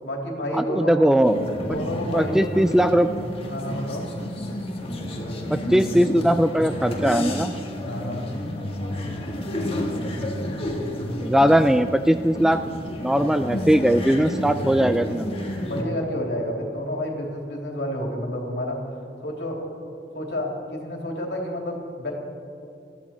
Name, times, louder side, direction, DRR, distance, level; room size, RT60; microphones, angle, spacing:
voice 1, 0.0-1.1 1.6-2.6 3.4-4.1 7.8-8.3 15.6-18.8 19.2-19.6 20.1-22.1, left 1 dB, 70° left, 0 dB, 2.9 m, -30 dB
voice 2, 0.6-1.4 2.1-3.1 5.5-7.5 11.2-12.6 13.0-15.4, equal, 5° right, 9 dB, 0.3 m, -20 dB
sound 1, 1.2-15.8, left 1 dB, 30° left, 1.7 m, -30 dB
20.5 x 14.0 x 4.4 m, 2.6 s
head